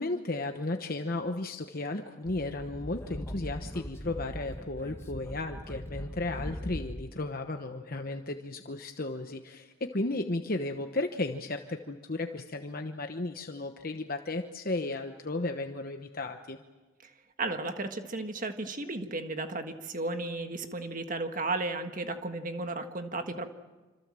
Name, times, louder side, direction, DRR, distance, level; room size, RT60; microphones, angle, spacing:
voice 1, 0.0-16.6, left 2 dB, 45° left, 6 dB, 1.0 m, -34 dB
Speech / Wind, 2.3-7.2, equal, 15° left, 1.5 m, -40 dB
voice 2, 17.4-23.5, right 2 dB, 40° right, 6 dB, 1.7 m, -34 dB
27.0 x 26.5 x 7.6 m, 1.2 s
head